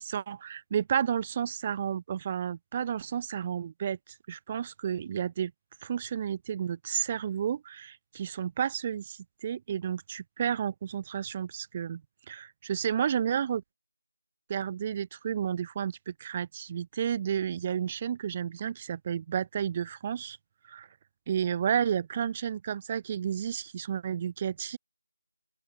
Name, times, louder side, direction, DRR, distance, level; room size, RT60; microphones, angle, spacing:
voice 1, 0.0-4.0 4.3-5.5 5.8-12.0 12.3-13.6 14.5-20.4 20.7-20.9 21.3-24.8, right 8 dB, 20° right, 2.9 m, -31 dB
open air
figure-of-eight pair, 165°, 0 cm